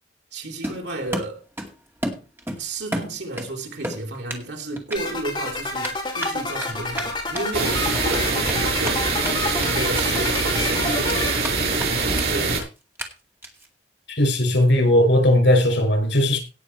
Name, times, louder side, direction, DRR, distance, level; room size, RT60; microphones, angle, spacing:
voice 1, 0.3-1.4 2.6-9.1 9.6-11.4 12.3-12.6, right 2 dB, 75° right, 3.4 m, -32 dB
Run, 0.6-1.7 2.0-3.5 3.8-4.4 4.8-5.0 5.8-9.3 9.6-9.7 9.9-10.4 10.7-11.5 11.8-11.9 12.2-12.3 12.5-12.6 13.0-13.1 13.4-13.7, right 1 dB, 15° right, 2.2 m, -31 dB
sound 1, 4.9-11.3, left 2 dB, 25° left, 5.6 m, -29 dB
sound 2, 7.5-12.6, right 3 dB, 60° right, 6.1 m, -23 dB
voice 2, 14.1-16.4, left 1 dB, 85° left, 6.1 m, -18 dB
17.5 x 7.1 x 4.6 m
head